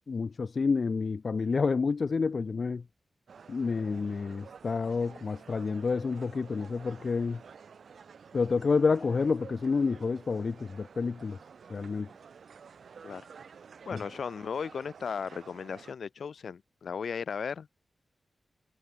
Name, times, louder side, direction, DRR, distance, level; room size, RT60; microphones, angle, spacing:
voice 1, 0.1-2.8 3.5-7.4 8.3-11.4 11.7-12.1 13.9-14.0, left 4 dB, 60° left, 0.3 m, -29 dB
sound 1, 3.3-15.9, right 6 dB, 80° right, 4.1 m, -51 dB
voice 2, 13.9-17.7, left 6 dB, 80° left, 2.3 m, -36 dB
wide cardioid pair, 75°, 0 cm